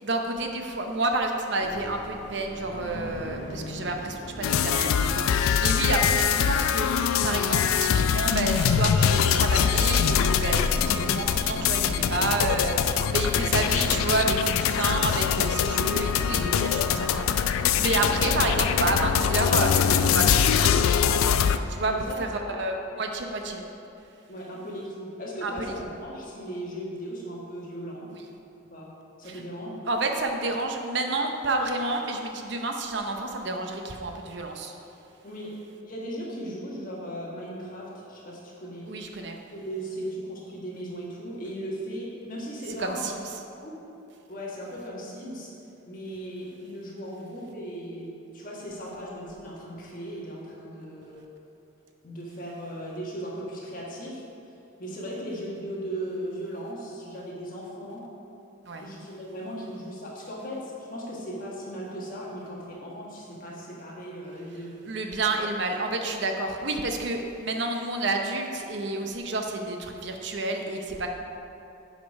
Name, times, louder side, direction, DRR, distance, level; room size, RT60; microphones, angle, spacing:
voice 1, 0.0-21.0 21.7-23.6 25.4-26.0 28.1-28.3 29.2-29.4 29.8-34.7 38.9-39.4 42.6-43.4 58.6-58.9 64.8-71.1, right 2 dB, 55° right, 3 dB, 0.7 m, -30 dB
sound 1, 1.6-14.1, left 1 dB, 60° left, 1.1 m, -43 dB
sound 2, 4.4-21.6, left 8 dB, 85° left, 0.3 m, -23 dB
voice 2, 21.8-22.6 24.3-28.1 28.7-28.9 29.2-29.7 35.2-35.6 35.8-39.2 39.5-43.2 43.6-43.8 44.3-45.5 45.8-51.2 52.0-54.2 54.8-58.1 58.8-64.7, equal, 40° left, -4 dB, 1.5 m, -37 dB
8.0 x 5.1 x 5.3 m, 2.8 s
head